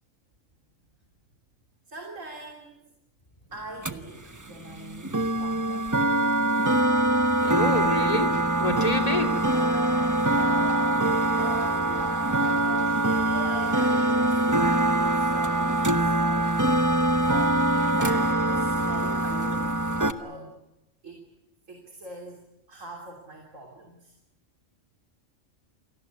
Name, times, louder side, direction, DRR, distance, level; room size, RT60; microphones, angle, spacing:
voice 1, 1.9-2.9 3.5-6.0 11.4-12.1 12.5-16.2 17.3-20.6 21.0-21.3 21.7-22.4 22.7-24.1, right 2 dB, 80° right, 2 dB, 3.6 m, -42 dB
sound 1, 3.8-20.1, right 1 dB, 15° right, 1.0 m, -24 dB
voice 2, 7.4-8.3 8.6-9.4, left 2 dB, 30° left, 4 dB, 2.9 m, -27 dB
sound 2, 9.4-17.4, left 1 dB, 90° left, 6.3 m, -42 dB
28.5 x 18.5 x 9.5 m, 0.93 s
omnidirectional pair, 1.3 m